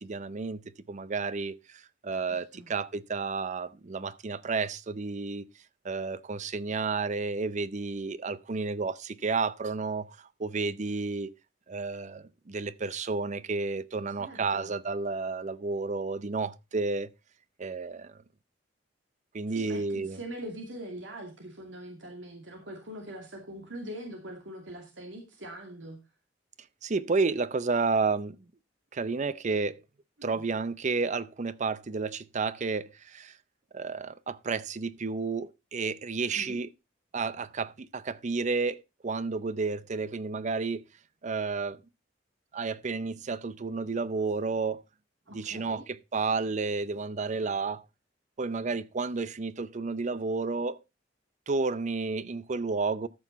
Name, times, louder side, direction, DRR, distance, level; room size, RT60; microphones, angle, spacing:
voice 1, 0.0-0.6 0.9-1.6 2.0-5.5 5.8-11.3 11.7-17.1 17.6-18.2 19.3-20.2 26.8-28.4 28.9-29.8 30.2-33.3 33.7-36.7 37.1-40.8 41.2-41.8 42.5-44.8 45.3-47.8 48.4-50.8 51.5-53.1, right 4 dB, 40° right, 0.6 m, -31 dB
voice 2, 2.3-2.7 14.2-14.7 19.5-26.0 30.2-30.4 36.3-36.6 45.3-45.8, right 1 dB, 90° right, 2.5 m, -43 dB
13.5 x 6.1 x 4.1 m
head